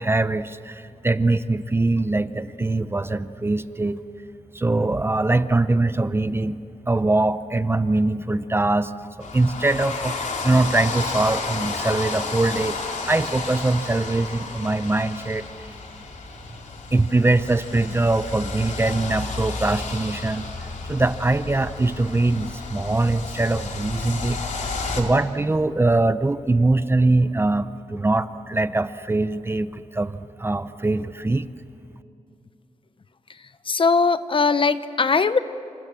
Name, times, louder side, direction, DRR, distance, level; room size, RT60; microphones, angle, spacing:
voice 1, 0.0-4.0 4.5-8.9 9.2-15.7 16.9-20.5 20.9-24.4 25.0-31.5, right 2 dB, 20° right, 13 dB, 0.7 m, -22 dB
sound 1, 9.2-25.0, left 3 dB, 90° left, 3.6 m, -32 dB
voice 2, 33.3-35.4, left 4 dB, 45° left, 13 dB, 0.9 m, -20 dB
27.5 x 27.5 x 7.6 m, 2.6 s
wide cardioid pair, 100°, 12 cm